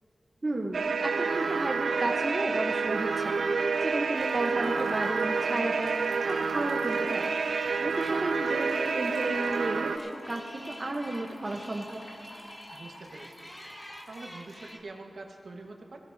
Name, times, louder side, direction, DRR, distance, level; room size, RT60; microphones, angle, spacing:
voice 1, 0.4-6.0 6.3-7.3 7.8-12.0, right 2 dB, 35° right, 0 dB, 0.8 m, -33 dB
sound 1, 0.7-10.0, right 5 dB, 85° right, 0.4 m, -29 dB
sound 2, 0.9-14.8, equal, 15° left, 0.8 m, -47 dB
sound 3, 4.1-14.7, left 1 dB, 80° left, 2.3 m, -51 dB
voice 2, 12.7-13.5 14.1-16.0, right 3 dB, 65° right, 1 dB, 1.2 m, -45 dB
21.0 x 15.5 x 2.7 m, 2.9 s
wide cardioid pair, 115°, 0 cm